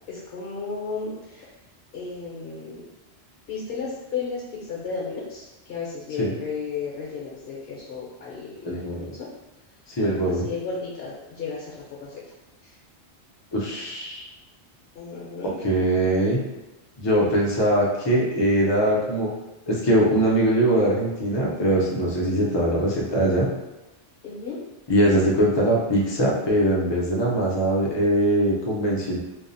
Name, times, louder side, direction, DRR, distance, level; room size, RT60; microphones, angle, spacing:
voice 1, 0.1-1.5 1.9-2.8 3.5-4.4 4.7-9.3 10.0-12.2 12.6-12.7 14.9-15.6 24.2-24.6, left 5 dB, 60° left, -5 dB, 0.8 m, -34 dB
voice 2, 8.6-9.1 10.0-10.5 13.5-14.2 15.6-16.4 17.0-19.3 19.7-23.5 24.9-29.2, right 1 dB, 40° left, -3 dB, 0.4 m, -22 dB
2.6 x 2.0 x 2.5 m, 1.0 s
omnidirectional pair, 1.2 m